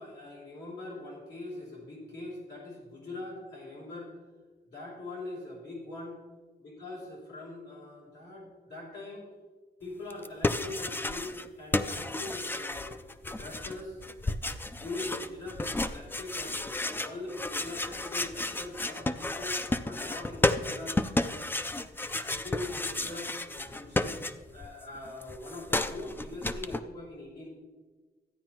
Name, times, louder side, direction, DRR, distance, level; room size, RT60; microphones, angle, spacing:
voice 1, 0.0-4.1 4.6-6.2 6.6-9.3 9.8-13.0 13.2-14.0 14.8-21.4 22.3-27.5, left 2 dB, 80° left, -4 dB, 3.6 m, -42 dB
sound 1, 10.1-11.5 11.7-24.7 24.9-26.8, left 2 dB, 10° left, 0.3 m, -32 dB
13.5 x 9.4 x 3.1 m, 1.3 s
wide cardioid pair, 150°, 18 cm